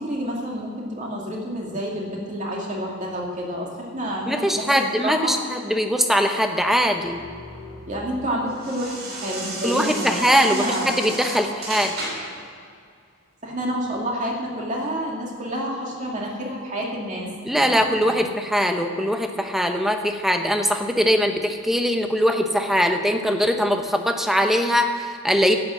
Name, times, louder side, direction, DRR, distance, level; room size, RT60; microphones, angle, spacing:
voice 1, 0.0-5.3 7.9-11.0 13.4-18.3, equal, 35° right, -2 dB, 2.4 m, -29 dB
voice 2, 4.3-7.2 9.6-12.0 17.5-25.6, equal, ahead, 5 dB, 0.8 m, -21 dB
sound 1, 6.6-12.4, right 1 dB, 75° right, 3.3 m, -34 dB
11.0 x 8.8 x 7.5 m, 2.2 s
head